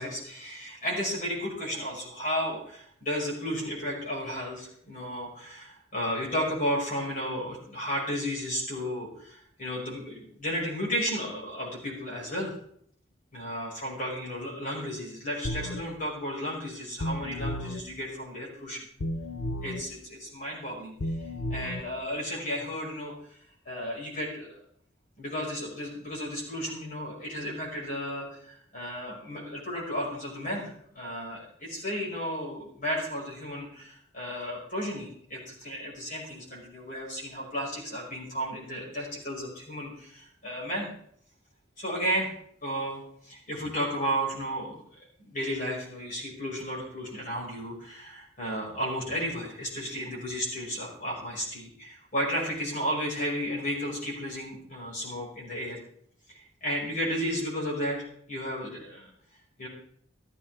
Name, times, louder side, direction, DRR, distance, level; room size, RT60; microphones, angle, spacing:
voice 1, 0.0-12.6 13.3-18.9 19.6-21.0 21.5-23.4 23.6-24.6 25.2-40.9 41.8-42.3 42.6-44.8 45.2-55.8 56.3-59.1 59.6-59.7, equal, 45° left, -3 dB, 5.8 m, -33 dB
sound 1, 15.4-15.8 17.0-17.8 19.0-19.8 21.0-21.8, left 1 dB, 85° left, 0.9 m, -32 dB
15.0 x 13.5 x 3.6 m, 0.66 s
head